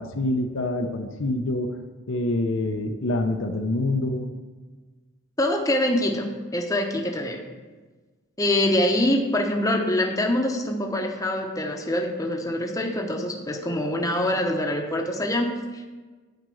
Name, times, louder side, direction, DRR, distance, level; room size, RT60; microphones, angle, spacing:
voice 1, 0.0-1.7 2.1-4.3, left 2 dB, 60° left, 5 dB, 0.7 m, -26 dB
voice 2, 5.4-7.4 8.4-15.9, left 1 dB, 15° left, 2 dB, 0.9 m, -25 dB
9.2 x 5.1 x 7.7 m, 1.3 s
head